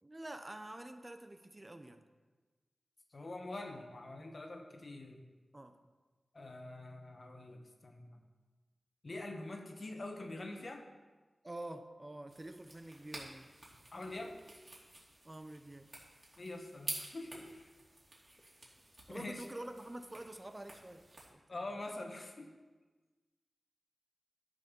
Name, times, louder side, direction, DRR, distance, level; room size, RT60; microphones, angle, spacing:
voice 1, 0.0-2.0 5.5-5.8 11.4-13.5 15.2-15.9 19.1-21.1 21.3-21.4, right 1 dB, 25° right, 7 dB, 0.8 m, -47 dB
voice 2, 3.1-5.2 6.3-8.2 9.0-10.9 13.9-14.4 16.4-17.7 19.1-19.4 21.5-22.5, left 2 dB, 55° left, 4 dB, 1.4 m, -45 dB
sound 1, 12.3-21.3, right 1 dB, 45° right, 2.8 m, -50 dB
11.5 x 7.0 x 5.5 m, 1.3 s
cardioid pair, 55°, 0 cm